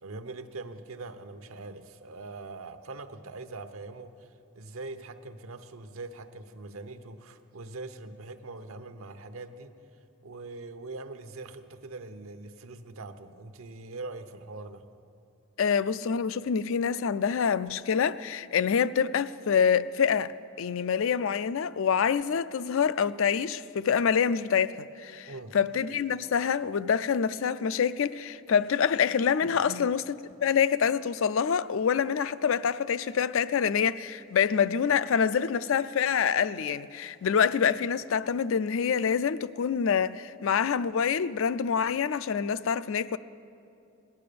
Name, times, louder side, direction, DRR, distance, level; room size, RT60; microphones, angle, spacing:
voice 1, 0.0-4.3 4.5-9.7 10.2-14.8 25.3-25.6 29.4-29.9, right 3 dB, 80° right, 0.9 m, -42 dB
voice 2, 15.6-30.0 30.4-43.2, left 7 dB, 70° left, 0.4 m, -26 dB
18.5 x 10.5 x 6.8 m
head